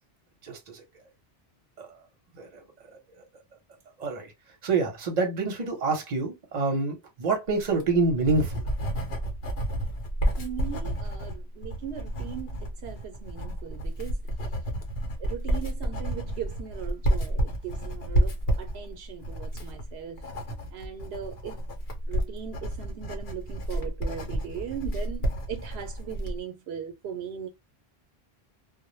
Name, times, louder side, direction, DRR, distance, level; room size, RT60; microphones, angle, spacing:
voice 1, 0.4-0.8 1.8-1.9 2.4-2.5 4.0-4.3 4.6-8.6, right 3 dB, 45° right, 0.8 m, -27 dB
Writing, 7.8-26.4, right 1 dB, 70° left, 0.9 m, -30 dB
voice 2, 10.4-12.6 12.8-14.2 15.2-20.2 20.7-21.6 22.1-27.5, right 8 dB, 80° right, 0.8 m, -39 dB
2.1 x 2.0 x 2.9 m
omnidirectional pair, 1.1 m